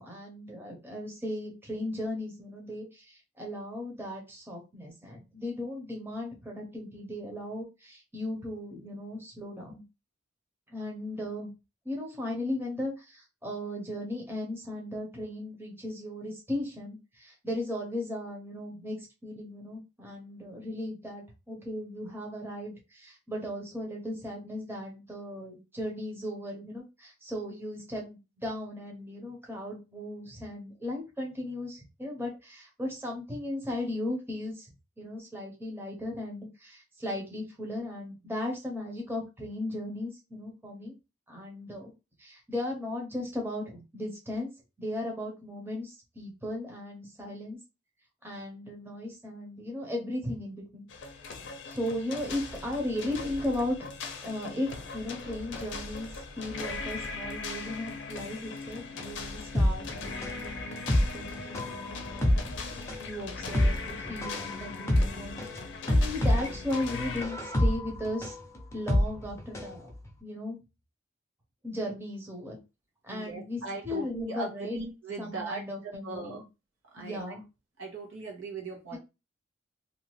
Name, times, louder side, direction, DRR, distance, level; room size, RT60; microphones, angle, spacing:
voice 1, 0.0-9.8 10.7-11.5 11.8-34.7 35.0-40.9 41.3-41.9 42.2-44.5 44.8-47.6 48.2-50.9 51.6-53.9 54.2-65.4 65.9-68.4 68.7-69.9 70.2-70.6 71.6-72.6 73.0-74.8 75.2-76.4 77.0-77.4 78.9-79.0, left 1 dB, 10° right, 0.9 m, -36 dB
sound 1, 50.9-67.3, left 4 dB, 60° left, 0.6 m, -39 dB
sound 2, 59.5-69.8 70.1-70.2, left 1 dB, 15° left, 0.7 m, -27 dB
voice 2, 73.1-75.7 76.0-76.4 76.9-77.2 77.8-79.0, right 3 dB, 80° right, 1.1 m, -38 dB
2.8 x 2.4 x 3.0 m
head